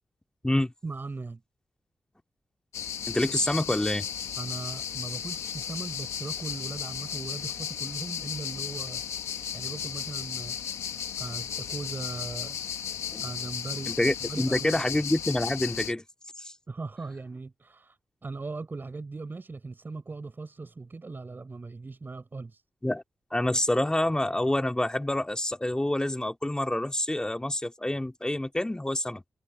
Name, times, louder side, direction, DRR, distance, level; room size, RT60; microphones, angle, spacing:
voice 1, 0.8-1.4 4.4-9.2 9.5-10.8 11.2-12.6 13.2-14.9 16.7-22.6, right 3 dB, 45° right, 5.3 m, -39 dB
sound 1, 2.7-15.9, left 9 dB, 90° left, 1.3 m, -35 dB
voice 2, 3.1-4.1 13.1-13.2 13.9-16.0 16.4-16.5 22.8-23.0 23.3-29.2, left 1 dB, 15° left, 2.6 m, -27 dB
supercardioid pair, 45°, 5 cm